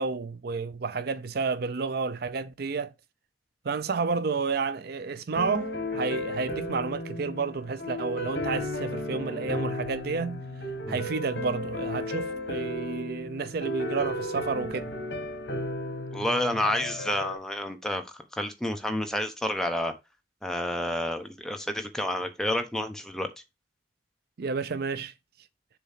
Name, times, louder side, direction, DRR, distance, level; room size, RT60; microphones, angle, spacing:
voice 1, 0.0-2.9 3.6-10.4 10.9-14.9 24.4-25.1, right 4 dB, 60° right, 0.5 m, -31 dB
sound 1, 5.4-17.4, left 1 dB, 70° left, 1.5 m, -34 dB
voice 2, 16.1-19.9 20.4-23.3, left 1 dB, 5° left, 0.9 m, -29 dB
6.9 x 3.1 x 5.7 m
head